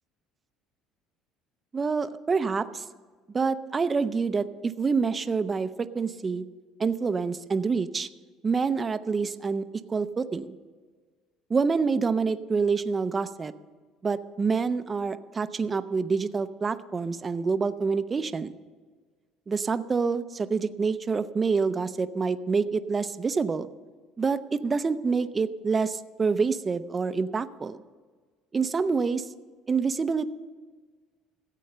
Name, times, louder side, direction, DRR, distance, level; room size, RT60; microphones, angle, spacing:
voice 1, 1.7-2.8 3.3-6.4 6.8-8.1 8.4-10.6 11.5-13.5 14.0-18.5 19.5-23.7 24.2-27.8 28.5-29.3 29.7-30.3, right 5 dB, 25° right, 12 dB, 0.5 m, -27 dB
14.5 x 8.3 x 6.7 m, 1.5 s
cardioid pair, 125°, 0 cm